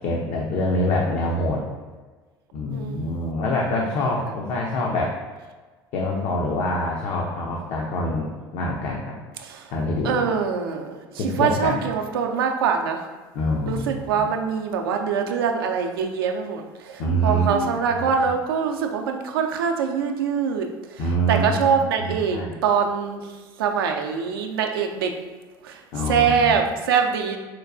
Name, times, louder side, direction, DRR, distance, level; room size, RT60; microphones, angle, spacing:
voice 1, 0.0-1.6 2.5-5.2 5.9-9.1 9.7-10.2 11.2-11.8 13.3-14.3 17.0-18.0 21.0-22.6 25.9-26.6, left 1 dB, 55° left, -2 dB, 0.5 m, -25 dB
voice 2, 2.7-3.2 4.0-4.1 9.4-9.7 10.0-13.1 13.7-23.2 23.6-25.1 25.6-25.8 26.1-27.4, right 6 dB, 80° right, 4 dB, 0.4 m, -24 dB
4.4 x 2.2 x 2.5 m, 1.3 s
hypercardioid pair, 70°, 12 cm